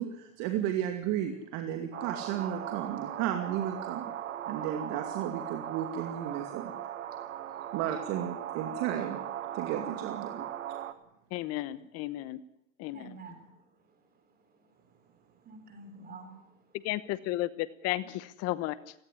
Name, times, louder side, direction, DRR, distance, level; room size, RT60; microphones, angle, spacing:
voice 1, 0.0-4.1 4.5-6.7 7.7-9.2 9.5-10.5, right 10 dB, 45° right, 6 dB, 2.4 m, -33 dB
sound 1, 1.9-10.9, right 11 dB, 80° right, 1.7 m, -38 dB
voice 2, 11.3-12.4 12.8-13.2 16.8-18.9, left 16 dB, 40° left, 16 dB, 1.1 m, -34 dB
voice 3, 12.9-14.0 14.5-14.6 14.9-16.7, right 3 dB, 25° right, 7 dB, 3.7 m, -50 dB
18.0 x 16.5 x 10.0 m, 0.79 s
hypercardioid pair, 115°, 38 cm